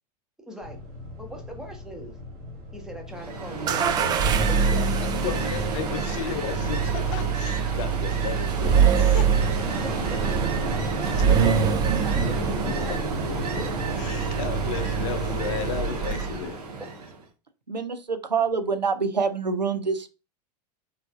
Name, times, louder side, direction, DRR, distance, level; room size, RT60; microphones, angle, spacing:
voice 1, 0.4-0.8 1.2-2.2 2.7-4.8 9.7-10.5 11.3-11.4 12.0-12.9 13.6-13.7, right 1 dB, 5° right, 2 dB, 0.8 m, -41 dB
sound 1, 0.6-15.6, left 1 dB, 40° right, 1.6 m, -42 dB
Ocean, 3.1-17.2, right 3 dB, 65° right, 0.8 m, -31 dB
sound 2, 3.7-16.5, right 7 dB, 20° right, 0.3 m, -25 dB
voice 2, 5.2-9.3 11.1-11.3 12.6-13.6 14.0-16.6, left 8 dB, 50° left, 9 dB, 0.6 m, -34 dB
voice 3, 17.7-20.1, right 5 dB, 90° right, 10 dB, 0.5 m, -26 dB
3.4 x 3.2 x 2.4 m, 0.30 s
figure-of-eight pair, 90°, 21 cm